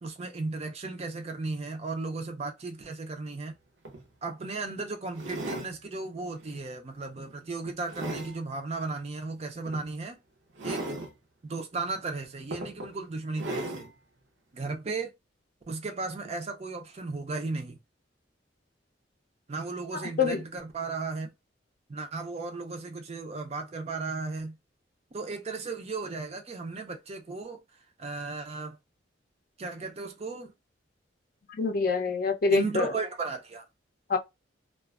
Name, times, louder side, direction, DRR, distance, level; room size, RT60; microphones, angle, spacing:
voice 1, 0.0-3.5 4.2-10.2 10.6-11.0 11.4-13.9 14.5-15.1 15.7-17.8 19.5-21.3 21.9-24.5 25.1-27.6 28.0-28.8 29.6-30.5 32.5-33.7, right 3 dB, 35° right, 0.4 m, -35 dB
sound 1, 3.5-3.6 3.9-4.1 5.1-5.7 6.4-6.6 7.2-8.4 9.7-9.8 10.6-11.1 12.0-12.1 12.5-12.9 13.3-13.9 14.7-14.8, right 1 dB, 70° right, 0.6 m, -37 dB
voice 2, 19.9-20.4 31.5-32.9 34.1-34.2, left 4 dB, 50° left, 0.5 m, -26 dB
2.4 x 2.2 x 2.3 m
head